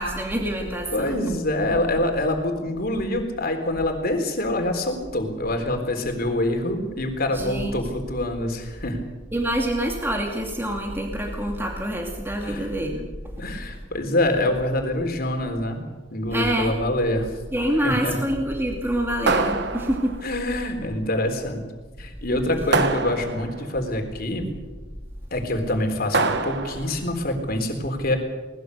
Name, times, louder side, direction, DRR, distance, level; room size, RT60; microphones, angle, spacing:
voice 1, 0.0-1.2 7.3-7.7 9.3-13.1 16.3-16.7 17.5-20.1, right 1 dB, 15° right, 0 dB, 2.5 m, -26 dB
voice 2, 0.9-9.0 12.4-12.7 13.4-15.8 16.1-17.3 17.8-18.2 20.2-21.6 22.0-24.5 25.3-28.2, left 1 dB, 55° left, 4 dB, 3.8 m, -25 dB
sound 1, 19.3-20.3 22.7-23.7 26.1-27.0, right 3 dB, 65° right, 1.4 m, -24 dB
22.0 x 19.5 x 6.7 m, 1.3 s
head